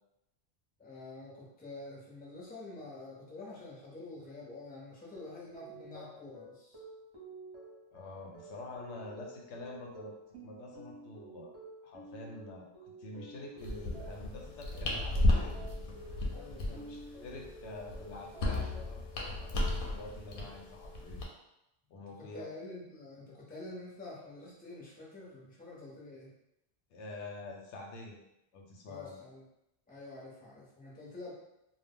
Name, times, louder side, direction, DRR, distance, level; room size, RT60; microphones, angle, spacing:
voice 1, 0.8-6.8 16.3-16.8 21.9-26.3 28.9-29.4 29.9-31.3, left 2 dB, 10° left, -4 dB, 0.4 m, -47 dB
sound 1, 5.1-19.9, right 2 dB, 25° right, 0.6 m, -51 dB
voice 2, 7.9-10.1 10.4-11.6 11.8-15.6 16.5-21.3 21.9-22.5 26.9-28.2 28.5-29.2, left 2 dB, 90° left, 0 dB, 0.9 m, -47 dB
sound 2, 13.6-21.2, left 1 dB, 60° left, 0.7 m, -34 dB
2.1 x 2.1 x 3.5 m, 0.85 s
omnidirectional pair, 1.1 m